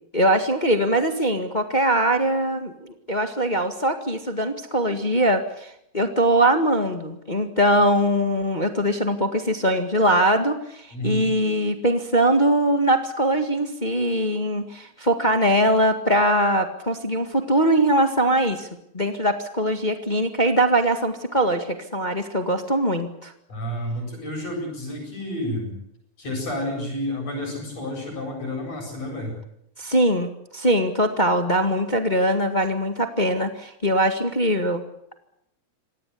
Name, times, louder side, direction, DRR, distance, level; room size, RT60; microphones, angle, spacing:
voice 1, 0.1-18.7 18.9-23.3 29.8-34.8, right 1 dB, 20° left, 6 dB, 1.4 m, -22 dB
voice 2, 10.9-11.3 23.5-25.8 26.2-29.3, equal, 55° left, 1 dB, 9.3 m, -30 dB
26.0 x 18.5 x 8.3 m, 0.76 s
omnidirectional pair, 3.6 m